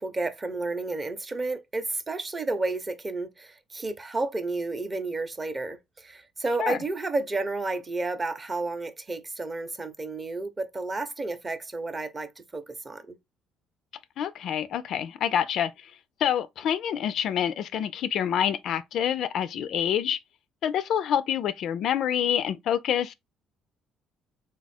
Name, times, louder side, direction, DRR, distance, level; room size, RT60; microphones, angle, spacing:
voice 1, 0.0-13.2, right 3 dB, 20° right, 0.6 m, -31 dB
voice 2, 14.2-15.7 16.2-20.2 20.6-23.1, left 9 dB, 55° left, 0.3 m, -27 dB
3.9 x 2.4 x 4.1 m
cardioid pair, 155°, 0 cm